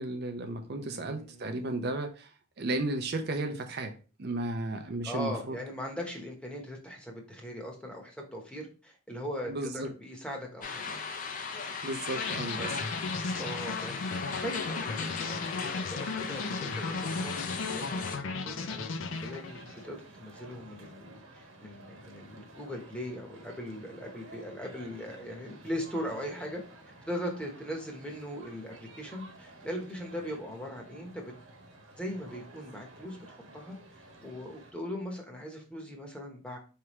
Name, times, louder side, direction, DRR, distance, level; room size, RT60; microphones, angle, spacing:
voice 1, 0.0-2.3 2.6-3.9 4.2-5.6 9.5-9.9 11.8-12.8, right 2 dB, 55° right, 0.5 m, -34 dB
voice 2, 0.8-1.8 5.0-10.8 12.6-12.8 13.3-18.0 18.4-26.6 27.0-31.3 32.0-36.6, equal, 5° left, 0.9 m, -40 dB
sound 1, 10.6-18.2, left 5 dB, 40° left, 0.6 m, -37 dB
sound 2, 12.2-19.8, left 4 dB, 85° left, 0.5 m, -36 dB
sound 3, 19.0-34.7, right 2 dB, 85° right, 1.1 m, -52 dB
4.6 x 3.3 x 3.0 m
head